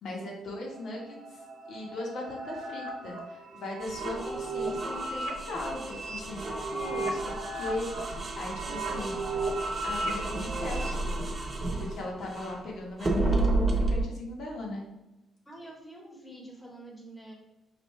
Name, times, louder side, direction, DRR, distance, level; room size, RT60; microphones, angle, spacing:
voice 1, 0.0-1.4 1.7-9.2 9.8-11.2 11.8-14.8, left 2 dB, 65° left, -1 dB, 1.2 m, -38 dB
sound 1, 0.6-10.9, right 2 dB, 75° right, 0.9 m, -36 dB
sound 2, 3.8-12.6 13.0-14.0, right 2 dB, 25° right, 0.8 m, -32 dB
voice 2, 8.6-9.5 15.5-17.3, right 1 dB, 10° left, -1 dB, 1.2 m, -46 dB
5.0 x 2.6 x 3.1 m, 0.99 s
cardioid pair, 90°, 0 cm